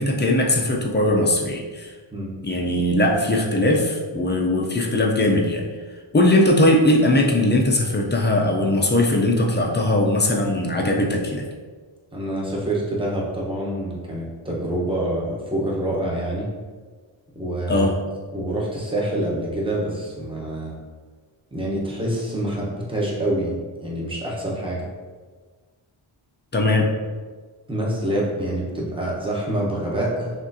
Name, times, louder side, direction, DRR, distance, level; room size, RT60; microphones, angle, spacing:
voice 1, 0.0-1.9 2.4-5.6 6.1-11.5 17.7-17.9 26.5-26.9, left 1 dB, 25° left, 0 dB, 0.5 m, -20 dB
voice 2, 12.1-16.5 17.3-17.9 18.3-20.7 21.5-24.8 27.7-30.3, right 1 dB, 10° right, -5 dB, 0.9 m, -26 dB
6.1 x 2.5 x 2.7 m, 1.5 s
wide cardioid pair, 130°, 48 cm